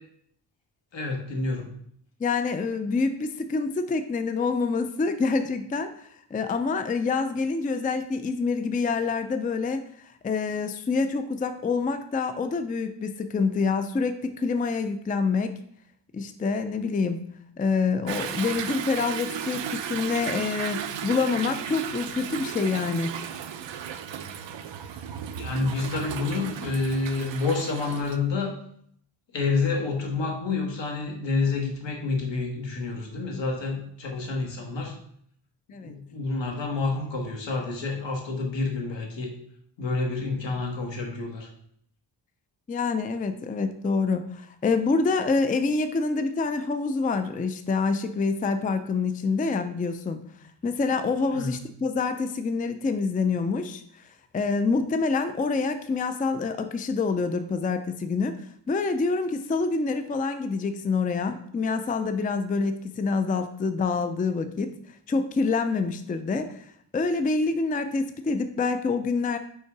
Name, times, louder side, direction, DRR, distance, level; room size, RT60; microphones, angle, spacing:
voice 1, 0.9-1.7 25.3-28.5 29.3-35.0 35.8-39.3 39.8-41.5 51.3-51.5, left 3 dB, 80° left, 0 dB, 1.6 m, -28 dB
voice 2, 2.2-9.8 10.2-15.6 16.1-17.2 17.6-23.1 35.7-36.0 42.7-50.2 50.6-53.8 54.3-58.4 58.7-64.7 65.1-66.6 66.9-69.4, left 4 dB, 20° left, 8 dB, 0.4 m, -26 dB
Toilet flush / Drip / Trickle dribble, 18.1-28.2, right 8 dB, 80° right, 0.6 m, -35 dB
5.5 x 3.7 x 4.6 m, 0.66 s
wide cardioid pair, 105°, 44 cm